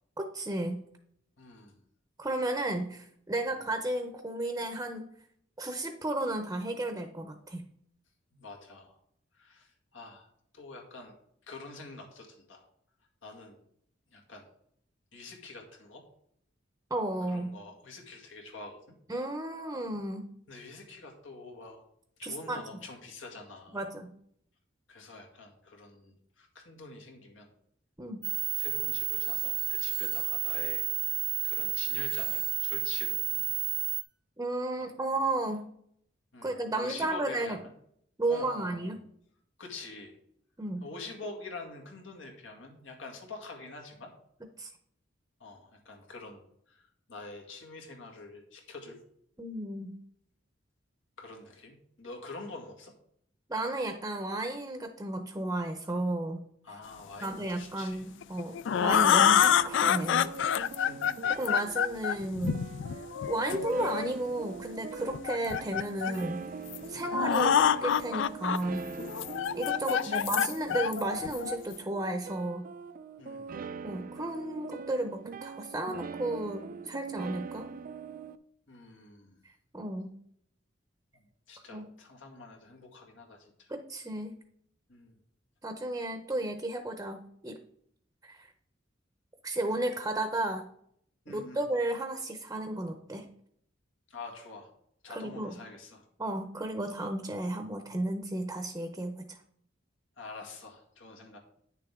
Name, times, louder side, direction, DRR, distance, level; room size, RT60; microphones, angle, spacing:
voice 1, 0.2-0.8 2.2-5.1 5.6-7.7 16.9-17.6 19.1-20.3 22.2-22.6 23.7-24.1 28.0-28.2 34.4-35.6 36.4-37.6 38.2-39.0 40.6-40.9 44.6-44.7 49.4-50.0 53.5-56.4 57.2-60.3 61.3-62.6 63.3-66.5 66.9-68.8 69.5-72.7 73.8-77.7 79.7-80.1 81.7-81.8 83.7-84.3 85.6-87.6 88.2-88.5 89.4-90.7 91.3-93.3 95.1-95.5 96.2-99.4, right 1 dB, 15° right, 6 dB, 0.7 m, -33 dB
voice 2, 1.4-1.8 3.5-3.6 8.3-9.0 9.3-10.3 10.5-11.2 11.5-12.6 13.2-13.6 14.1-14.5 15.1-16.0 17.3-19.0 20.5-21.8 22.2-23.9 24.9-27.5 28.6-33.4 36.3-37.7 38.3-39.0 39.6-40.2 40.8-44.1 45.4-49.0 51.2-52.9 56.6-58.0 60.8-61.2 66.9-67.3 69.9-70.3 73.2-73.5 78.7-79.4 81.1-83.7 84.9-85.2 91.3-91.6 94.1-94.7 95.0-96.1 100.2-101.4, left 3 dB, 85° left, 1 dB, 2.0 m, -46 dB
sound 1, 28.2-34.0, right 16 dB, 80° right, 0.7 m, -31 dB
sound 2, 58.2-64.1 65.1-66.2 66.7-66.8 67.0-68.6 69.0-71.7, left 9 dB, 70° left, 0.4 m, -27 dB
sound 3, 58.8-78.4, right 5 dB, 45° right, 0.4 m, -43 dB
9.6 x 6.8 x 3.6 m, 0.68 s
head